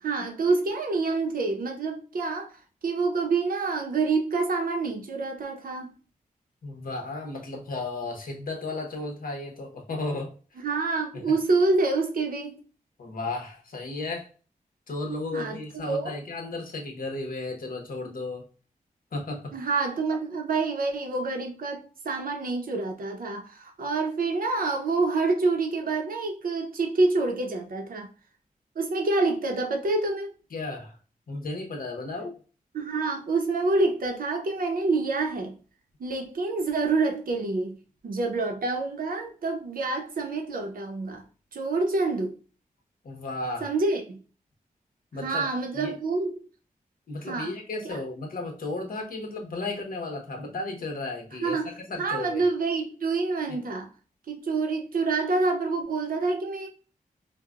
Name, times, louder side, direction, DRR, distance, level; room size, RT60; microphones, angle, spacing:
voice 1, 0.0-6.0 10.6-12.6 15.3-15.6 15.8-16.1 19.5-28.1 28.7-30.3 32.7-35.5 36.0-37.8 38.0-41.2 41.5-42.4 43.6-44.2 45.2-46.4 47.3-47.5 47.8-48.0 51.4-51.7 52.0-53.9 54.3-56.7, right 3 dB, 70° right, 0.7 m, -27 dB
voice 2, 6.6-10.3 11.1-11.2 13.0-14.3 14.9-18.4 19.1-19.5 30.5-31.0 31.3-32.4 43.0-43.7 45.1-45.4 45.7-46.0 47.1-51.6 51.9-52.4 53.5-53.6, left 2 dB, 75° left, 1.0 m, -34 dB
4.6 x 2.2 x 2.4 m
wide cardioid pair, 145°, 15 cm